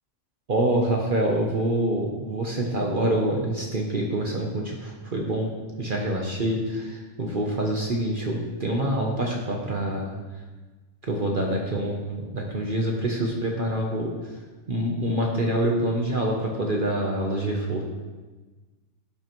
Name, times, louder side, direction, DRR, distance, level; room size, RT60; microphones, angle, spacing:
voice 1, 0.5-5.5 5.8-10.2 11.1-14.1 14.7-17.8, right 1 dB, 45° right, 0 dB, 0.8 m, -26 dB
11.5 x 5.4 x 3.0 m, 1.3 s
omnidirectional pair, 1.6 m